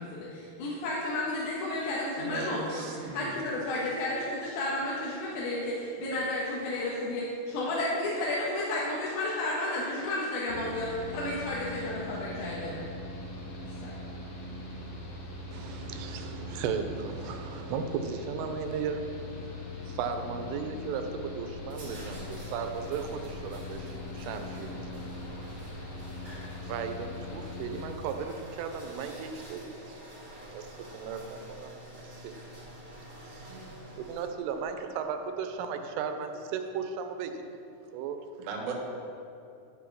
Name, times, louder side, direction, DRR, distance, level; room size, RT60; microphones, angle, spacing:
voice 1, 0.0-2.8 3.1-12.8 13.8-13.9, left 1 dB, 80° left, -6 dB, 3.8 m, -32 dB
voice 2, 2.2-3.3 33.5-33.7 38.4-38.7, right 4 dB, 65° right, -2 dB, 2.0 m, -37 dB
Mechanical fan, 10.5-27.9, left 2 dB, 60° left, 1.6 m, -41 dB
voice 3, 15.5-19.1 19.8-25.1 26.6-30.0 30.5-32.3 33.2-37.6 37.9-38.2, right 6 dB, 80° right, 6 dB, 3.2 m, -36 dB
sound 1, 21.5-34.6, right 1 dB, 35° right, 1.9 m, -47 dB
13.0 x 4.8 x 7.2 m, 2.7 s
omnidirectional pair, 5.9 m